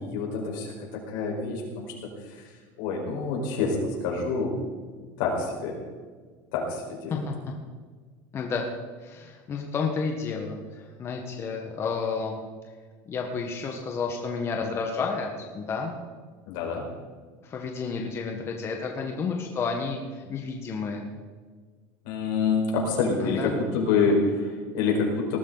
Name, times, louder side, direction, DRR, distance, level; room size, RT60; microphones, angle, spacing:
voice 1, 0.0-1.9 2.2-4.5 5.2-5.8 6.5-7.2 16.5-16.8 22.0-25.4, left 4 dB, 80° left, -1 dB, 4.9 m, -27 dB
voice 2, 8.3-8.7 9.0-12.4 13.1-16.0 17.4-21.1 23.2-23.5, left 5 dB, 25° left, 2 dB, 1.4 m, -31 dB
19.5 x 13.0 x 4.0 m, 1.5 s
cardioid pair, 165°, 10 cm